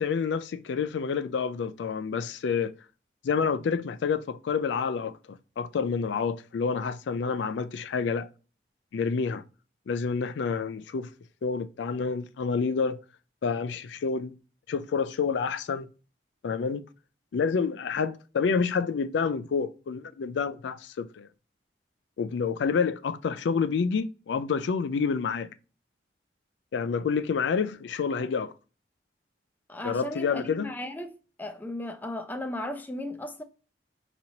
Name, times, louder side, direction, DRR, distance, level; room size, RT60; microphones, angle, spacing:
voice 1, 0.0-2.7 3.2-8.3 8.9-9.4 9.9-11.1 11.4-13.0 13.4-14.3 14.7-15.9 16.4-16.8 17.3-21.3 22.2-25.5 26.7-28.5 29.8-30.7, left 5 dB, 85° left, 0.4 m, -28 dB
voice 2, 29.7-31.1 31.4-33.4, left 1 dB, 10° left, 0.4 m, -35 dB
5.1 x 3.0 x 2.7 m
head